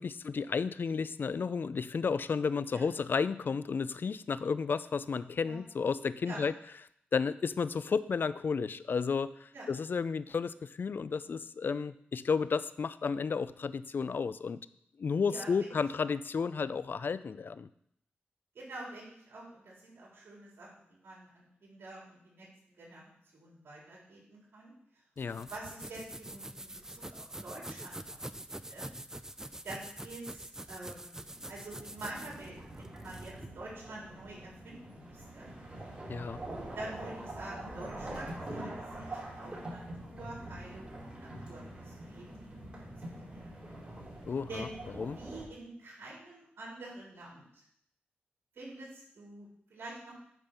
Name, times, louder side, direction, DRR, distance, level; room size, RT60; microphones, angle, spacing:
voice 1, 0.0-6.5 7.1-14.6 15.0-17.7 25.2-25.5 36.1-36.4 44.3-44.7 45.0-45.2, left 5 dB, 55° left, 15 dB, 0.4 m, -32 dB
voice 2, 15.3-15.7 18.5-22.5 22.8-23.0 23.3-24.7 25.5-28.2 28.5-28.9 29.6-31.2 31.5-35.5 36.7-42.5 42.8-43.5 44.5-47.6 48.5-50.2, right 2 dB, 70° right, -4 dB, 3.9 m, -47 dB
sound 1, 25.2-33.5, right 1 dB, 15° right, 0.4 m, -45 dB
sound 2, 31.2-45.4, right 1 dB, 30° right, 4.3 m, -44 dB
9.0 x 5.1 x 6.0 m, 0.70 s
cardioid pair, 70°, 4 cm